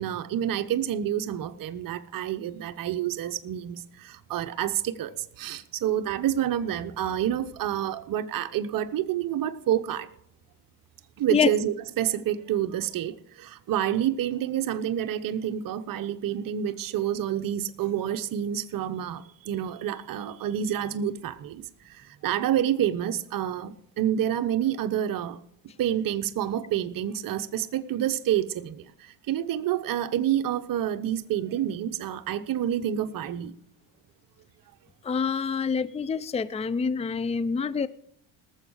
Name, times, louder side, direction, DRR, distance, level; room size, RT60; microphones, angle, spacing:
voice 1, 0.0-10.1 11.2-25.4 25.8-33.5, right 10 dB, 50° right, 1.0 m, -28 dB
voice 2, 35.0-37.9, left 5 dB, 15° left, 0.6 m, -26 dB
18.5 x 7.3 x 5.6 m
supercardioid pair, 85°, 43 cm